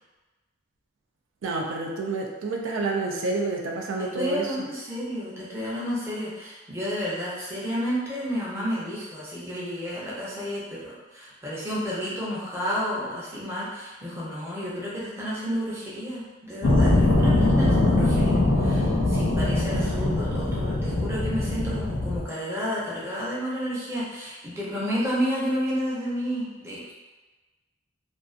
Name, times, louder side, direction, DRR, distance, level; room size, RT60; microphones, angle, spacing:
voice 1, 1.4-4.7, right 3 dB, 90° right, 0 dB, 0.4 m, -29 dB
voice 2, 4.1-26.9, equal, 15° right, -8 dB, 0.6 m, -31 dB
sound 1, 16.6-22.2, left 2 dB, 70° left, 0.6 m, -22 dB
2.4 x 2.4 x 2.4 m, 1.2 s
head